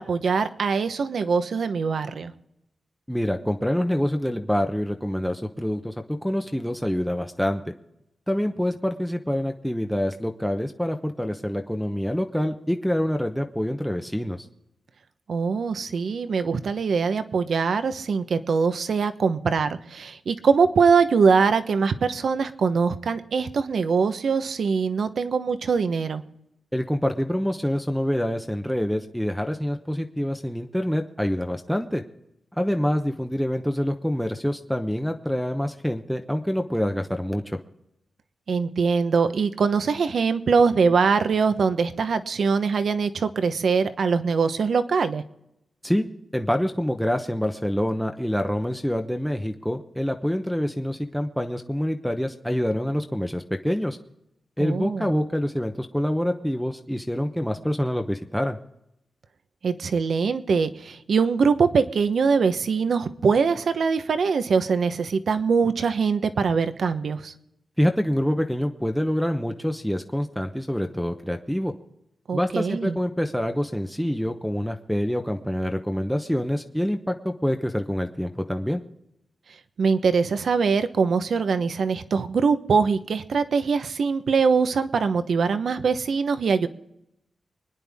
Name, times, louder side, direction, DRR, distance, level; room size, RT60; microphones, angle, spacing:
voice 1, 0.0-2.3 15.3-26.2 38.5-45.2 54.6-55.2 59.6-67.3 72.3-73.0 79.8-86.7, right 5 dB, 70° right, 10 dB, 1.0 m, -23 dB
voice 2, 3.1-5.9 6.2-7.6 8.3-14.5 26.7-32.0 32.6-37.6 45.8-46.1 46.3-54.0 54.6-58.6 67.8-71.7 72.3-78.8, equal, ahead, 4 dB, 0.9 m, -26 dB
25.0 x 10.0 x 3.6 m, 0.83 s
wide cardioid pair, 110°, 0 cm